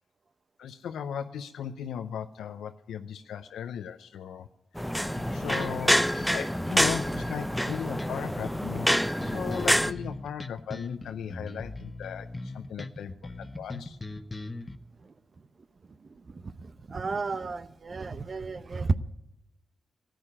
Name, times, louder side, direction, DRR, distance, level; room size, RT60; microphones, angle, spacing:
voice 1, 0.6-4.5 5.3-8.9 9.2-14.0, left 8 dB, 90° left, 8 dB, 0.6 m, -37 dB
sound 1, 4.8-9.9, equal, ahead, 0.7 m, -27 dB
sound 2, 5.2-14.8, left 2 dB, 25° left, 1.2 m, -40 dB
voice 2, 16.0-19.0, right 4 dB, 50° right, 15 dB, 0.8 m, -33 dB
14.0 x 9.3 x 9.8 m, 0.86 s
cardioid pair, 50°, 0 cm